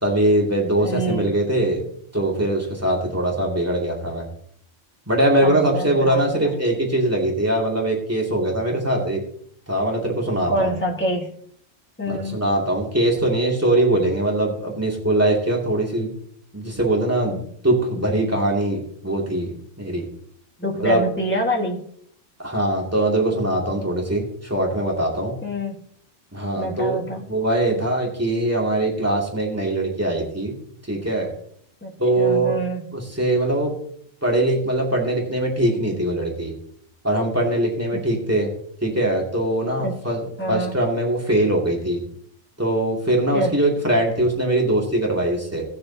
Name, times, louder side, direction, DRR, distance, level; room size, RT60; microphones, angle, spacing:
voice 1, 0.0-1.9 2.1-4.2 5.1-9.2 9.7-10.7 12.1-16.1 16.5-20.0 20.8-21.0 22.4-25.4 26.3-27.0 27.3-30.5 30.9-31.3 32.0-32.6 32.9-33.7 34.2-36.5 37.0-38.5 38.8-42.0 42.6-45.6, right 1 dB, 10° right, -2 dB, 2.4 m, -22 dB
voice 2, 0.8-1.2 5.4-6.5 10.5-11.3 12.0-12.5 20.6-21.8 25.4-25.8 26.6-27.2 31.8-32.9 39.8-39.9 40.4-40.8 43.3-43.5, right 1 dB, 10° left, -1 dB, 1.6 m, -26 dB
18.5 x 6.6 x 2.8 m, 0.66 s
omnidirectional pair, 1.3 m